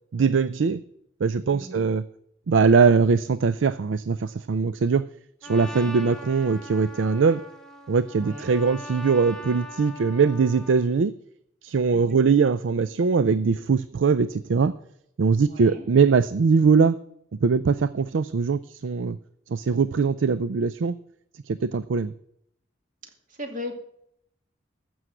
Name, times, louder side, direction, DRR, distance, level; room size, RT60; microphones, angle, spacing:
voice 1, 0.1-0.8 1.2-2.0 2.5-5.1 5.4-7.4 7.9-11.1 11.6-14.8 15.2-17.0 17.4-19.2 19.5-21.0 21.3-22.1, right 5 dB, 85° right, 14 dB, 0.4 m, -21 dB
voice 2, 1.5-1.8 5.7-5.9 8.2-8.6 11.9-12.2 15.5-15.9 23.4-23.8, left 1 dB, 45° right, 4 dB, 2.4 m, -37 dB
Trumpet, 5.4-10.9, left 1 dB, 5° left, 1.4 m, -41 dB
14.0 x 6.3 x 7.8 m, 0.73 s
head